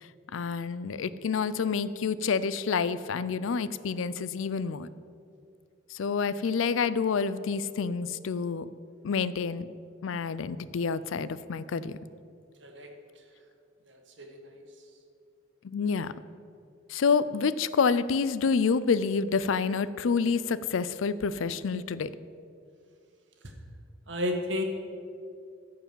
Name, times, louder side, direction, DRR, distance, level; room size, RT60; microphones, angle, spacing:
voice 1, 0.3-4.9 5.9-8.7 9.0-9.7 10.0-12.0 15.6-16.1 16.9-22.1, left 5 dB, 80° left, 16 dB, 0.4 m, -28 dB
voice 2, 13.9-14.6 24.1-24.6, left 1 dB, 65° right, 3 dB, 1.5 m, -33 dB
14.0 x 4.8 x 7.4 m, 2.4 s
head